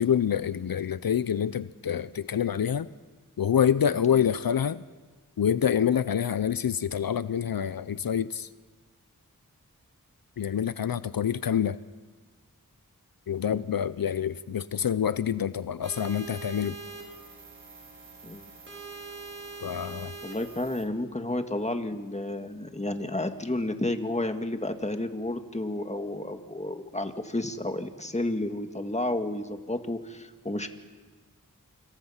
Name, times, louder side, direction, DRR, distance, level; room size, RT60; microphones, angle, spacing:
voice 1, 0.0-2.9 3.4-4.8 5.4-8.5 10.4-11.8 13.3-16.8 19.6-20.1, left 8 dB, 80° left, 15 dB, 0.6 m, -26 dB
sound 1, 15.8-20.8, right 3 dB, 35° right, 5.6 m, -43 dB
voice 2, 20.2-30.7, left 1 dB, 20° left, 7 dB, 1.8 m, -31 dB
28.5 x 27.0 x 5.7 m, 1.4 s
wide cardioid pair, 60°, 35 cm